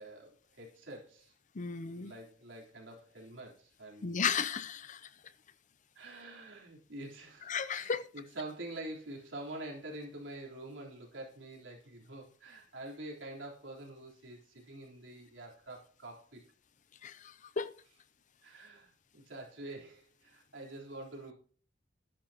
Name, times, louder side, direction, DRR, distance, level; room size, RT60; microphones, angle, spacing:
voice 1, 0.0-1.3 1.7-4.3 6.0-16.4 18.4-21.3, right 2 dB, 80° right, 3.7 m, -46 dB
voice 2, 1.6-2.1 4.0-5.0 7.5-8.1 17.0-17.7, left 6 dB, 40° left, 0.6 m, -34 dB
12.0 x 10.0 x 2.9 m
head